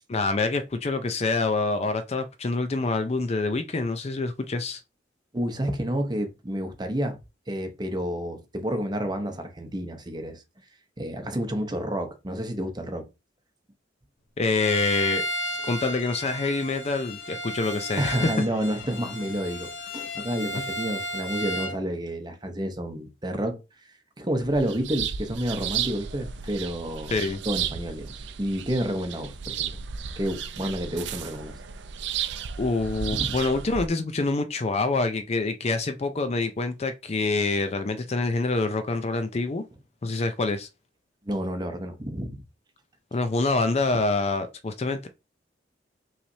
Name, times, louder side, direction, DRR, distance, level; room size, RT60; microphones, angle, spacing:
voice 1, 0.1-4.8 14.4-15.2 15.6-18.3 20.6-20.7 27.1-27.4 32.6-39.6 40.0-40.7 43.1-45.1, left 3 dB, 35° left, 0.4 m, -26 dB
voice 2, 5.3-7.2 7.5-10.4 11.0-13.1 18.0-23.6 24.2-27.1 27.5-29.8 30.2-31.6 33.1-33.3 41.3-42.3, equal, 25° right, 0.8 m, -30 dB
Bowed string instrument, 14.6-21.8, left 1 dB, 80° left, 0.9 m, -33 dB
sound 1, 24.4-33.9, right 8 dB, 65° right, 0.5 m, -34 dB
5.7 x 3.3 x 2.7 m
head